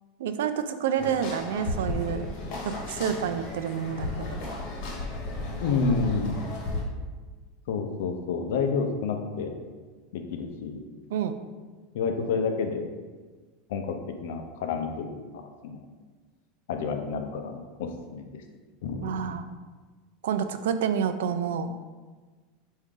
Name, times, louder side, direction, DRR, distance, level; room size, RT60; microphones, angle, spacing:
voice 1, 0.2-2.3 2.6-4.4 11.1-11.3 19.0-19.5 20.2-21.8, right 8 dB, 90° right, 9 dB, 0.3 m, -28 dB
sound 1, 1.0-6.8, left 2 dB, 50° left, 1.1 m, -34 dB
voice 2, 5.6-6.4 7.7-9.5 10.1-10.8 11.9-12.9 13.7-15.2 15.6-15.8 16.7-18.3 18.8-19.3, left 5 dB, 75° left, 5 dB, 0.5 m, -29 dB
4.7 x 2.6 x 3.7 m, 1.4 s
supercardioid pair, 155°, 0 cm